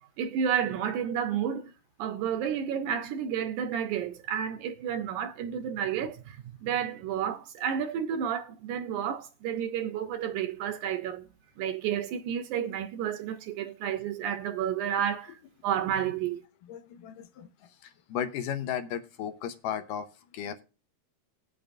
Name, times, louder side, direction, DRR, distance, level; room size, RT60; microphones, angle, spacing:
voice 1, 0.2-1.7 2.0-11.2 11.6-15.4 15.6-16.4, right 9 dB, 75° right, 1.9 m, -31 dB
voice 2, 16.6-20.1 20.3-20.6, left 9 dB, 80° left, 2.4 m, -35 dB
19.0 x 6.9 x 2.5 m
omnidirectional pair, 4.0 m